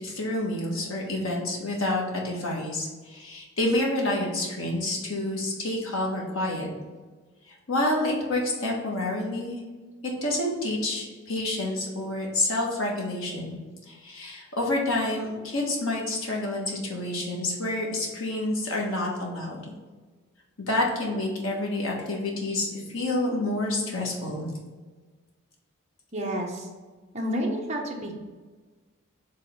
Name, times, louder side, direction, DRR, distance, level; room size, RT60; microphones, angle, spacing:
voice 1, 0.0-6.7 7.7-9.6 10.2-13.6 13.9-19.6 20.7-24.5, left 1 dB, 80° left, -1 dB, 1.5 m, -28 dB
voice 2, 26.1-26.7 27.1-28.1, equal, 35° right, 0 dB, 1.0 m, -30 dB
4.9 x 3.6 x 5.6 m, 1.4 s
head